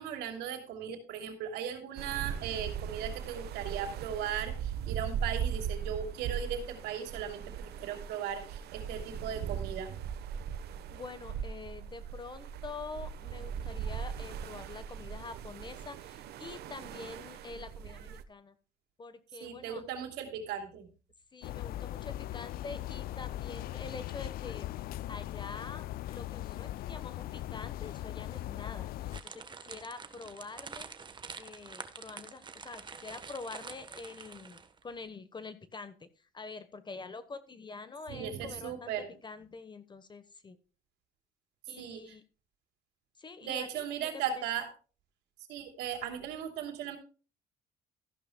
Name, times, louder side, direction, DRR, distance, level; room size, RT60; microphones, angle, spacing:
voice 1, 0.0-10.0 19.4-20.9 38.1-39.1 41.8-42.2 43.4-44.7 45.5-47.0, right 8 dB, 90° right, 5 dB, 2.9 m, -37 dB
sound 1, 2.0-18.2, right 8 dB, 70° right, 1.0 m, -39 dB
voice 2, 10.7-18.6 19.0-19.8 21.3-24.7 25.1-30.9 31.3-40.6 41.7-42.2 43.2-43.8 44.1-44.4, left 4 dB, 25° left, 12 dB, 1.1 m, -46 dB
sound 2, 21.4-29.2, left 14 dB, 60° left, 0.4 m, -39 dB
sound 3, 29.1-34.8, right 5 dB, 25° right, 1.2 m, -47 dB
14.5 x 11.5 x 2.2 m, 0.36 s
cardioid pair, 110°, 17 cm